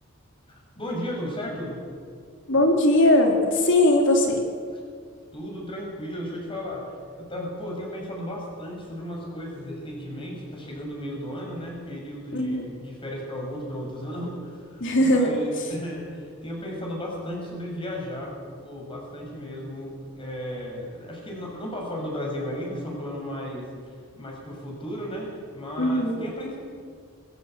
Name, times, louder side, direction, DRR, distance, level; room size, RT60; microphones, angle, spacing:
voice 1, 0.5-1.8 5.3-18.3 18.6-23.7 24.2-26.6, equal, 25° left, -1 dB, 6.7 m, -34 dB
voice 2, 2.5-4.4 12.3-12.7 14.8-15.3 25.8-26.2, left 1 dB, 60° left, 2 dB, 3.7 m, -20 dB
21.0 x 16.5 x 8.2 m, 2.1 s
head